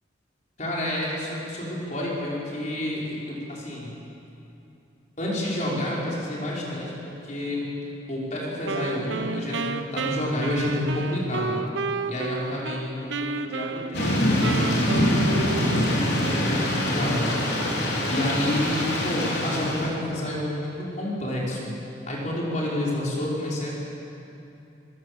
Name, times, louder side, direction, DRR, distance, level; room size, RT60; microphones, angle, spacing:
voice 1, 0.6-3.9 5.2-7.6 8.1-11.6 12.0-14.5 15.0-17.3 17.7-21.7 22.1-23.7, left 1 dB, 40° left, -5 dB, 5.8 m, -29 dB
Wind instrument woodwind instrument, 8.6-12.8 13.1-16.0, right 4 dB, 75° right, 1.0 m, -31 dB
Thunder / Rain, 13.9-19.9, left 1 dB, 60° left, 4.8 m, -24 dB
24.5 x 20.5 x 8.0 m, 2.8 s
head